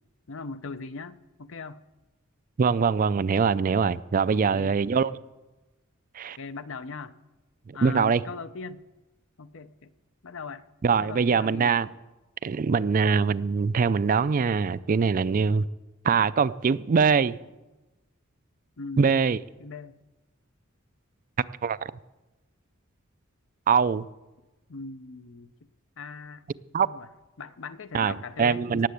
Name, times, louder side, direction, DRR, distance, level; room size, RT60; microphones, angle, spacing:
voice 1, 0.3-1.8 4.3-5.2 6.4-7.1 7.7-8.8 9.4-9.9 10.2-10.6 11.0-11.8 18.8-19.1 19.6-20.0 24.7-25.7 26.0-26.5 26.8-27.1 27.4-28.9, left 4 dB, 65° left, 12 dB, 0.7 m, -40 dB
voice 2, 2.6-5.1 6.2-6.4 7.7-8.2 10.8-11.9 12.4-15.6 16.0-17.4 19.0-19.4 21.6-21.9 23.7-24.1 26.7-26.9 27.9-28.9, right 5 dB, 40° right, 16 dB, 0.4 m, -23 dB
18.0 x 7.6 x 8.3 m, 1.1 s
head